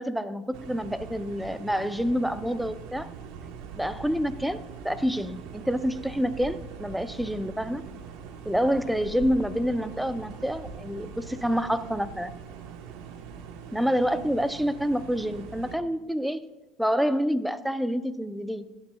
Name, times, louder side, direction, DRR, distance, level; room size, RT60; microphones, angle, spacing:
voice 1, 0.0-3.1 3.8-4.6 4.8-7.8 8.5-12.3 13.7-16.4 16.8-18.7, equal, ahead, 12 dB, 0.6 m, -27 dB
sound 1, 0.5-15.8, right 6 dB, 75° right, 1.1 m, -42 dB
15.5 x 9.5 x 2.3 m, 1.0 s
supercardioid pair, 90°, 0 cm